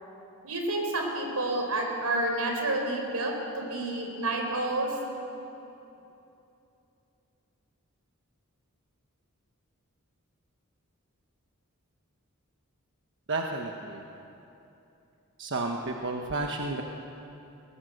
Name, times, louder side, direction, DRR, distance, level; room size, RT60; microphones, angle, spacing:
voice 1, 0.4-4.9, right 2 dB, 90° right, 2 dB, 4.3 m, -29 dB
voice 2, 13.3-14.0 15.4-16.8, right 2 dB, 55° right, 2 dB, 1.2 m, -31 dB
20.0 x 19.5 x 8.0 m, 2.9 s
head